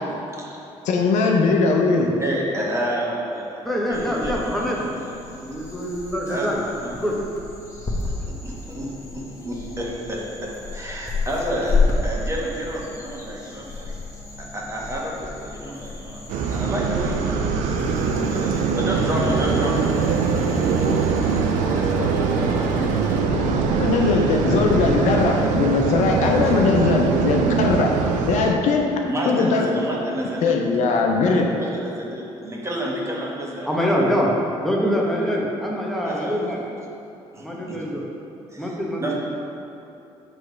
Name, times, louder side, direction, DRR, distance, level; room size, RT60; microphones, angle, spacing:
voice 1, 0.3-0.8 2.2-5.4 6.3-6.9 8.0-14.0 14.4-18.1 18.5-20.1 21.7-23.5 26.4-26.5 29.0-30.6 31.6-33.9 36.0-36.3 37.3-37.8 38.5-39.1, equal, 20° right, -3 dB, 1.4 m, -30 dB
voice 2, 0.8-2.1 23.3-23.4 23.8-27.9 28.3-28.9 29.3-29.7 30.4-31.5, left 4 dB, 70° left, 2 dB, 0.6 m, -20 dB
voice 3, 3.6-4.8 5.4-6.6 6.9-7.1 33.6-34.3 34.6-36.6 37.4-38.1 38.6-39.0, equal, ahead, -3 dB, 1.2 m, -24 dB
sound 1, 3.9-21.4, left 3 dB, 25° left, 1.1 m, -31 dB
sound 2, 16.3-28.5, right 5 dB, 80° right, 0.5 m, -22 dB
sound 3, 18.9-23.2, right 3 dB, 65° right, 1.0 m, -35 dB
6.3 x 3.3 x 5.1 m, 2.7 s
supercardioid pair, 75°, 13 cm